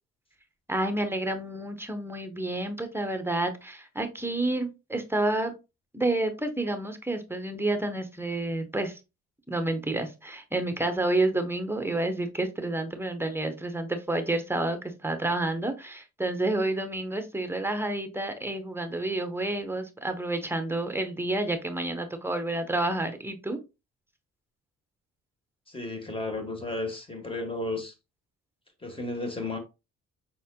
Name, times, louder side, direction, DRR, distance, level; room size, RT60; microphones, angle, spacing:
voice 1, 0.7-5.5 5.9-9.0 9.5-23.6, right 2 dB, 10° right, 0.9 m, -29 dB
voice 2, 25.7-27.9 28.8-29.6, left 2 dB, 20° left, 1.4 m, -33 dB
5.8 x 4.1 x 2.2 m
cardioid pair, 90°, 30 cm